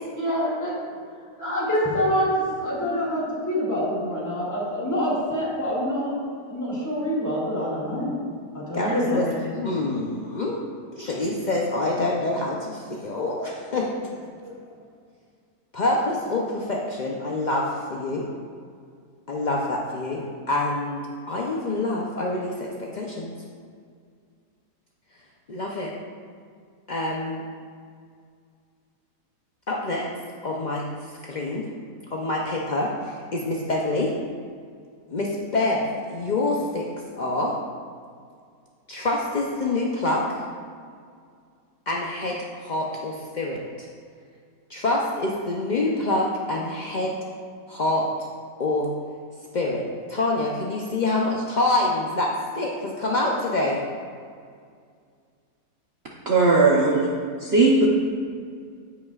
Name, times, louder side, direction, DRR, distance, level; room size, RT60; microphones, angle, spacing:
voice 1, 0.2-0.8 1.3-2.3 2.6-6.1 6.5-8.1 8.5-9.5 11.0-11.1 12.9-13.0 14.4-14.6, equal, 10° left, -7 dB, 2.1 m, -26 dB
voice 2, 8.7-9.3 9.6-10.6 10.9-14.1 15.7-18.2 19.3-23.3 25.5-25.9 26.9-27.4 29.7-30.1 30.4-30.9 31.2-31.7 32.1-34.1 35.1-36.9 37.2-37.5 38.9-40.4 41.9-43.9 44.7-47.2 47.7-48.1 48.6-48.9 49.5-53.8, left 2 dB, 65° left, -2 dB, 0.4 m, -26 dB
voice 3, 56.3-57.1 57.4-57.9, right 3 dB, 50° right, -4 dB, 0.9 m, -18 dB
15.0 x 5.3 x 2.4 m, 2.1 s
omnidirectional pair, 1.7 m